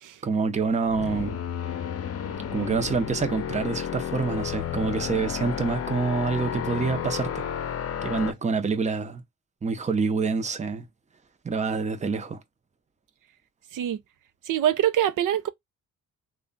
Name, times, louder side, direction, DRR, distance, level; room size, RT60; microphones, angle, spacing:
voice 1, 0.2-1.4 2.5-7.4 8.0-9.2 9.6-10.8 11.4-12.4, right 4 dB, 20° right, 0.7 m, -27 dB
sound 1, 0.6-8.3, left 9 dB, 50° left, 0.6 m, -32 dB
voice 2, 14.5-15.5, right 10 dB, 75° right, 0.5 m, -24 dB
3.2 x 2.3 x 3.8 m
cardioid pair, 85°, 31 cm